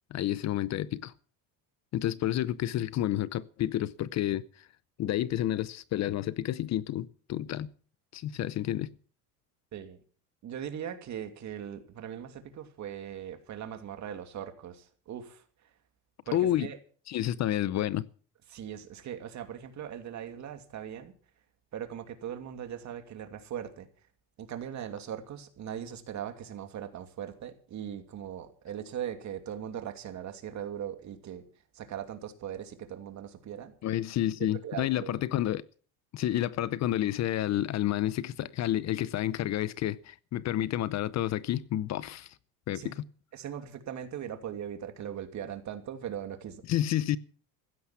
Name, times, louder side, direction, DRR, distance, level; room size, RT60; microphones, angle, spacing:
voice 1, 0.1-1.1 1.9-4.4 5.0-7.7 8.1-8.9 16.3-16.7 17.1-18.1 33.8-35.6 36.1-42.3 42.7-43.0 46.7-47.2, left 13 dB, 45° left, 0.7 m, -30 dB
voice 2, 10.4-15.4 16.3-16.8 18.5-21.1 21.7-23.9 24.4-31.4 31.7-33.7 34.6-35.1 42.7-42.9 43.3-46.6, right 9 dB, 45° right, 2.7 m, -39 dB
16.0 x 13.0 x 5.7 m
supercardioid pair, 115°, 38 cm